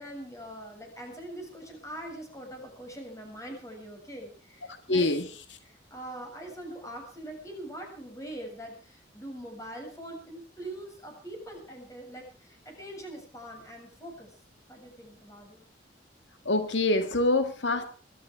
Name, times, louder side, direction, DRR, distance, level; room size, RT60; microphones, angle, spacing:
voice 1, 0.0-5.1 5.7-14.3 14.7-15.6, right 1 dB, 20° left, 3 dB, 7.4 m, -43 dB
voice 2, 4.9-5.3 16.5-17.8, left 2 dB, 85° left, 8 dB, 2.0 m, -25 dB
22.5 x 13.5 x 4.9 m, 0.41 s
head